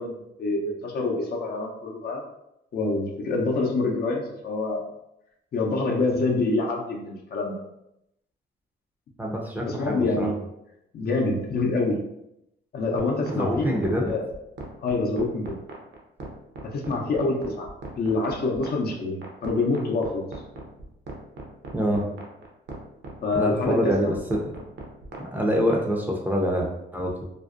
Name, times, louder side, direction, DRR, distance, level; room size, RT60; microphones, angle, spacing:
voice 1, 0.0-2.2 2.7-4.8 5.5-7.6 9.6-10.4 10.9-12.0 12.7-13.7 14.0-14.2 14.8-15.6 16.6-17.7 18.0-20.3 23.2-24.1, left 3 dB, 50° left, 0 dB, 0.5 m, -26 dB
voice 2, 9.2-10.3 13.3-14.1 21.7-22.1 23.3-24.5 25.2-27.2, equal, 10° right, -1 dB, 0.5 m, -25 dB
sound 1, 13.0-25.8, right 3 dB, 65° right, 0.6 m, -38 dB
2.5 x 2.1 x 2.4 m, 0.83 s
cardioid pair, 90°, 20 cm